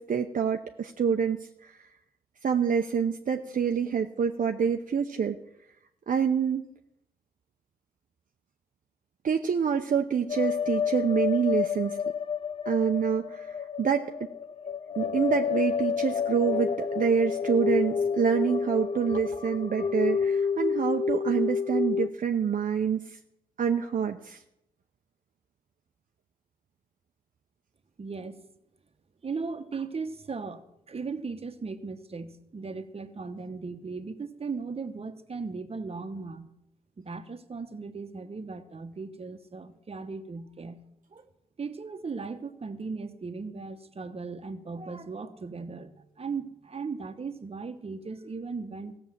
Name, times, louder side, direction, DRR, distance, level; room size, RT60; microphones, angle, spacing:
voice 1, 0.0-1.8 2.4-5.4 6.1-6.7 9.2-12.0 12.7-14.1 15.0-23.2 23.6-24.4, right 7 dB, 60° right, 5 dB, 0.7 m, -27 dB
sound 1, 10.3-22.1, left 6 dB, 35° left, 0.4 m, -29 dB
voice 2, 28.0-28.4 29.2-36.5 37.0-40.8 41.1-41.3 41.6-49.0, right 4 dB, 40° right, 8 dB, 1.1 m, -37 dB
15.5 x 7.0 x 7.4 m, 0.83 s
cardioid pair, 75°, 16 cm